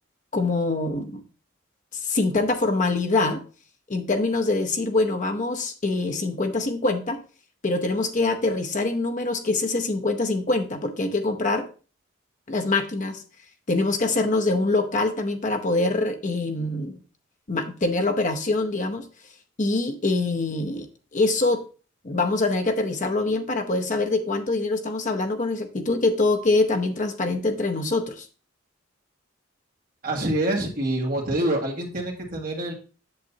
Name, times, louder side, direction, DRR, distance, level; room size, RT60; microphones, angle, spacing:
voice 1, 0.3-1.2 1.9-3.4 3.9-7.2 7.6-11.7 12.5-13.2 13.7-17.0 17.5-19.1 19.6-20.9 21.1-21.6 22.0-28.3, left 2 dB, 40° left, 5 dB, 0.7 m, -24 dB
voice 2, 30.0-32.7, right 1 dB, 45° right, 0 dB, 1.8 m, -26 dB
7.8 x 7.5 x 2.7 m, 0.36 s
head